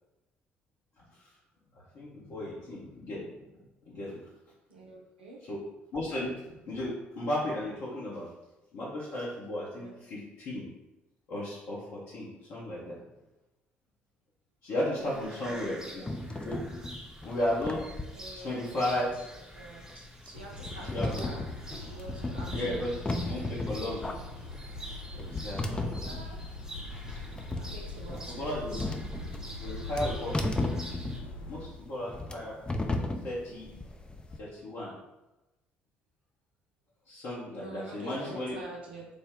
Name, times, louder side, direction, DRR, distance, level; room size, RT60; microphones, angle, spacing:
voice 1, 1.0-1.3 1.7-3.3 3.8-4.2 5.5-5.6 5.9-6.3 6.7-8.3 8.7-10.7 11.3-13.0 14.6-16.0 16.4-16.6 17.2-17.8 18.3-19.1 20.6-20.7 20.9-21.3 22.5-22.9 23.2-24.1 25.1-25.8 28.3-28.9 29.6-30.4 31.5-32.6 33.2-33.7 34.3-34.9 37.1-38.6, left 1 dB, 55° left, -6 dB, 0.8 m, -34 dB
voice 2, 4.7-5.5 9.7-10.0 14.9-15.9 17.7-17.9 18.1-19.0 19.3-23.5 25.5-26.4 27.6-28.9 37.6-39.1, right 2 dB, 85° right, -2 dB, 0.5 m, -47 dB
sound 1, 15.0-31.2, right 1 dB, 15° right, 0.7 m, -48 dB
sound 2, 16.0-34.4, left 2 dB, 15° left, 0.4 m, -36 dB
sound 3, 20.3-31.7, left 2 dB, 85° left, 0.4 m, -42 dB
3.4 x 2.1 x 3.6 m, 1.0 s
figure-of-eight pair, 50°, 6 cm